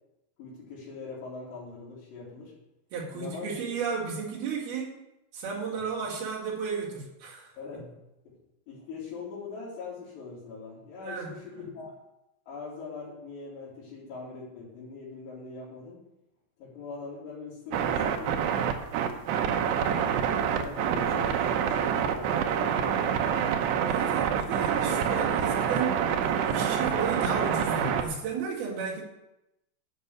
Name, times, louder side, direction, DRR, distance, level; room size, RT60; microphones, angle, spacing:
voice 1, 0.4-2.5 3.1-3.7 5.7-5.8 7.6-7.9 8.7-11.9 12.5-16.0 16.6-18.4 19.1-23.4 25.2-25.5, left 4 dB, 80° left, -10 dB, 5.2 m, -42 dB
voice 2, 2.9-4.9 5.3-7.5 11.0-11.3 23.9-29.0, right 5 dB, 65° right, -4 dB, 3.9 m, -33 dB
sound 1, 17.7-28.0, right 8 dB, 85° right, 2.9 m, -27 dB
9.6 x 5.5 x 8.1 m, 0.88 s
omnidirectional pair, 4.9 m